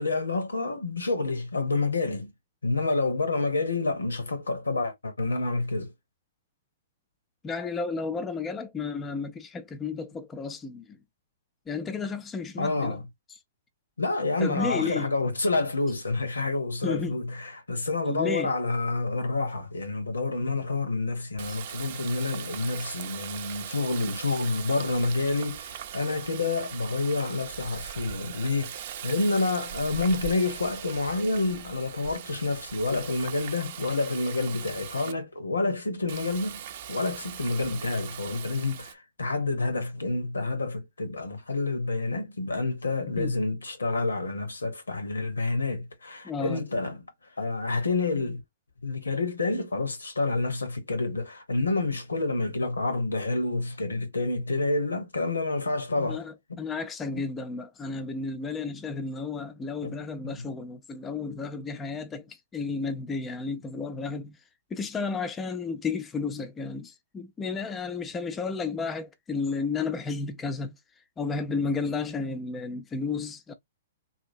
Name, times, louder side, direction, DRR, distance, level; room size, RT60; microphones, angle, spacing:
voice 1, 0.0-2.3 2.6-5.9 12.6-13.0 14.0-36.6 36.9-47.0 47.4-48.4 48.8-56.2 56.5-56.6 57.2-57.3 59.8-59.9 60.2-60.4, left 3 dB, 90° left, 0.9 m, -28 dB
voice 2, 7.4-11.0 11.7-13.0 14.4-15.2 16.8-17.2 18.1-18.5 43.2-43.5 46.2-46.6 56.0-64.4 64.7-70.8 71.2-73.5, left 4 dB, 20° left, 0.5 m, -32 dB
Water tap faucet, 21.4-35.1 36.1-38.9, right 10 dB, 55° right, 0.6 m, -40 dB
2.8 x 2.7 x 2.7 m
hypercardioid pair, 120°, 0 cm